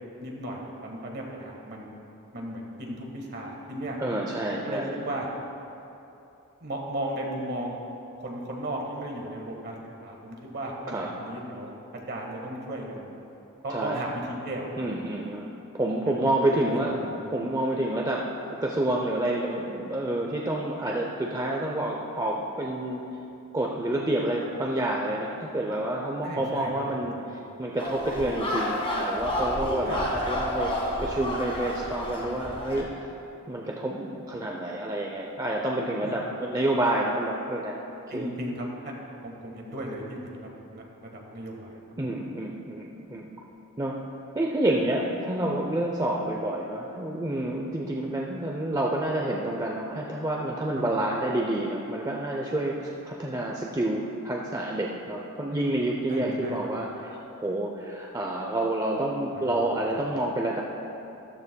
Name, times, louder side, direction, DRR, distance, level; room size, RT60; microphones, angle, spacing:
voice 1, 0.2-1.9 2.3-4.0 4.5-5.3 6.6-7.8 8.2-11.7 12.1-13.1 13.6-14.9 16.5-16.8 26.2-26.7 27.0-27.1 29.8-30.0 36.0-36.1 38.1-38.9 39.2-41.8 50.8-50.9 56.1-56.6 59.4-59.5, right 1 dB, 50° right, 0 dB, 1.5 m, -35 dB
voice 2, 4.0-5.0 10.9-11.1 13.7-14.1 14.8-15.5 15.7-23.0 23.5-30.7 31.0-33.0 33.5-37.8 38.1-38.3 42.0-43.3 43.8-44.0 44.3-60.6, right 1 dB, 15° right, -1 dB, 0.5 m, -28 dB
sound 1, 27.8-32.8, left 1 dB, 25° left, 1.3 m, -30 dB
13.5 x 12.5 x 2.3 m, 2.9 s
head